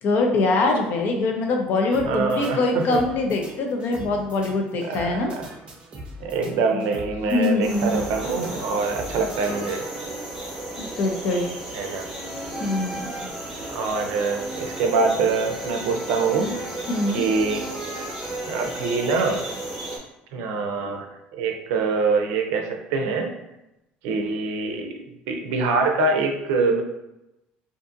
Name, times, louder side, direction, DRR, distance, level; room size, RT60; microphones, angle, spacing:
voice 1, 0.0-5.3 7.2-8.1 10.8-11.4 12.6-13.1 16.9-17.3, left 3 dB, 55° left, 2 dB, 0.5 m, -23 dB
sound 1, 1.9-10.2, equal, 30° right, 0.6 m, -42 dB
voice 2, 2.0-3.0 4.8-5.5 6.2-9.8 11.7-12.1 13.7-16.5 17.1-17.6 18.5-19.4 20.3-21.1 21.3-23.3 24.0-26.8, right 4 dB, 80° right, 3 dB, 0.4 m, -24 dB
sound 2, 7.6-20.0, right 1 dB, 5° right, 0.8 m, -33 dB
2.5 x 2.5 x 2.5 m, 0.91 s
cardioid pair, 120°, 4 cm